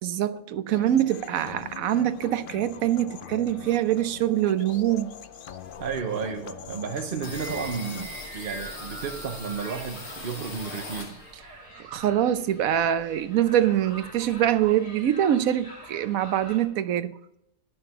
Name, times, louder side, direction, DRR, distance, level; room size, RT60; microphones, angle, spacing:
voice 1, 0.0-5.1 11.8-17.1, right 11 dB, 70° right, 1.1 m, -24 dB
sound 1, 0.7-8.1, left 8 dB, 65° left, 0.5 m, -42 dB
voice 2, 5.8-11.2, right 6 dB, 45° right, 0.8 m, -32 dB
sound 2, 7.2-11.6 11.9-13.3 13.6-13.7 13.9-14.7, left 2 dB, 85° left, 2.9 m, -41 dB
sound 3, 7.2-16.6, right 2 dB, 30° left, 3.3 m, -44 dB
11.0 x 6.8 x 5.5 m
omnidirectional pair, 1.5 m